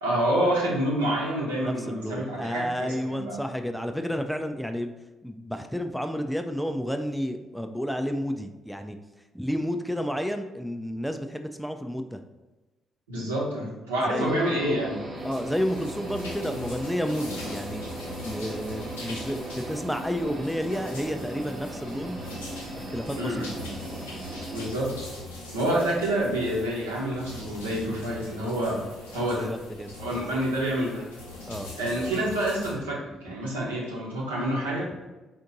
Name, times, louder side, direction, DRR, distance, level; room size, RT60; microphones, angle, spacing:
voice 1, 0.0-3.4 13.1-15.0 23.2-23.5 24.5-24.9 25.5-28.8 29.1-29.5 30.0-31.1 31.8-34.9, right 1 dB, 80° right, -5 dB, 0.9 m, -27 dB
voice 2, 1.6-4.9 5.2-9.0 9.3-12.2 14.1-14.3 15.2-17.9 18.2-22.2 22.9-23.5 29.3-30.4 31.5-31.7, equal, ahead, 6 dB, 0.4 m, -31 dB
sound 1, 14.3-24.7, right 1 dB, 45° right, 1.0 m, -38 dB
sound 2, 15.2-32.7, left 1 dB, 85° left, 0.7 m, -42 dB
4.4 x 2.5 x 3.8 m, 1.1 s
figure-of-eight pair, 45°, 0 cm